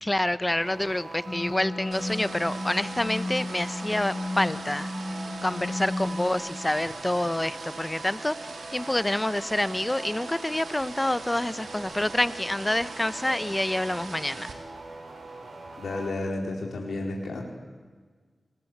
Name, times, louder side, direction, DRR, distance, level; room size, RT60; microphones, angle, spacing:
voice 1, 0.0-4.9 5.4-8.4 8.7-14.5, left 1 dB, 15° left, 15 dB, 1.0 m, -27 dB
sound 1, 0.6-16.1, right 2 dB, 65° right, 6.9 m, -43 dB
sound 2, 1.3-6.3, left 2 dB, 30° left, 3.0 m, -34 dB
sound 3, 1.9-14.5, right 4 dB, 85° right, 3.5 m, -42 dB
voice 2, 15.8-17.4, left 2 dB, 85° left, 0 dB, 4.4 m, -31 dB
30.0 x 22.5 x 8.1 m, 1.5 s
wide cardioid pair, 75°, 0 cm